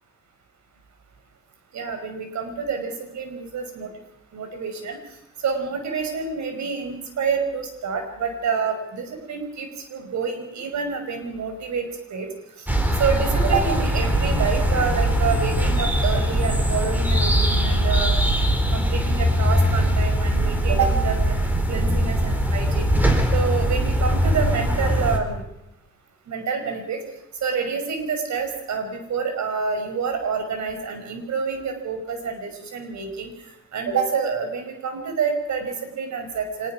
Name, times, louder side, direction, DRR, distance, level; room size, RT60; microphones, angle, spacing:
voice 1, 1.7-3.9 4.3-5.0 5.4-12.3 13.0-18.1 18.7-21.4 21.7-22.9 23.3-25.4 26.3-27.0 27.4-33.3 33.7-36.7, right 5 dB, 65° right, 6 dB, 5.7 m, -27 dB
sound 1, 12.7-25.2, equal, 5° right, 4.4 m, -21 dB
25.5 x 20.5 x 6.0 m, 0.85 s
cardioid pair, 90°, 30 cm